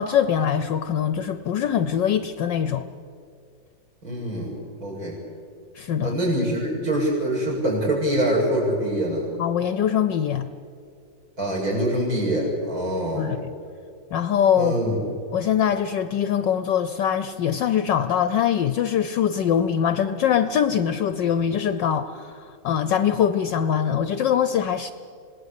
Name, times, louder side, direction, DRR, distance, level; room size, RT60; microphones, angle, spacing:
voice 1, 0.0-2.8 5.7-6.2 9.4-10.5 13.2-13.5 14.1-14.7 15.3-24.9, left 9 dB, 70° left, 11 dB, 1.3 m, -23 dB
voice 2, 4.0-4.5 4.8-5.2 6.0-9.3 11.4-13.3 14.6-15.0, right 1 dB, 45° right, -2 dB, 7.9 m, -24 dB
27.0 x 19.0 x 8.3 m, 2.4 s
omnidirectional pair, 2.2 m